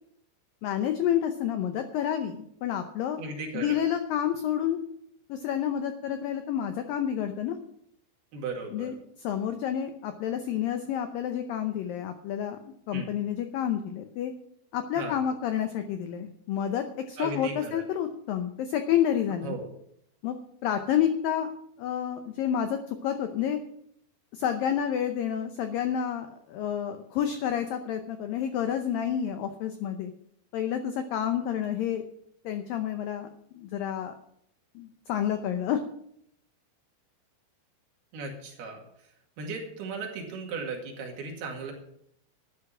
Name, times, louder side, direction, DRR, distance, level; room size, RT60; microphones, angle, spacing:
voice 1, 0.6-3.2 3.5-4.8 5.3-7.6 8.7-14.3 14.7-19.6 20.2-20.4 20.6-21.5 21.8-23.6 24.3-30.1 30.5-32.0 32.4-33.3 33.5-34.1 34.8-35.8, left 9 dB, 90° left, 7 dB, 2.0 m, -29 dB
voice 2, 3.2-3.8 8.3-8.9 12.9-13.1 15.0-15.2 17.2-17.8 19.4-19.7 38.1-38.8 39.4-41.7, right 4 dB, 65° right, 1 dB, 3.9 m, -36 dB
12.5 x 9.7 x 6.0 m, 0.71 s
omnidirectional pair, 5.2 m